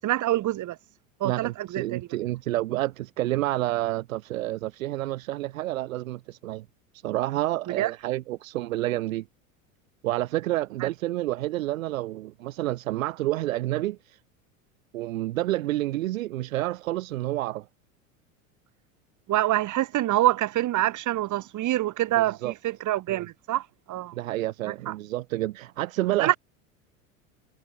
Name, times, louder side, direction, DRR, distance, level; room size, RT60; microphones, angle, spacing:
voice 1, 0.0-0.8 1.2-2.1 7.8-7.9 10.8-10.9 19.3-24.1 24.7-24.9 26.2-26.4, right 14 dB, 45° right, 7.0 m, -26 dB
voice 2, 1.2-6.6 7.0-9.3 10.0-14.0 14.9-17.7 22.2-22.5 23.1-23.2 24.1-26.3, right 16 dB, 75° right, 4.3 m, -29 dB
hypercardioid pair, 90°, 41 cm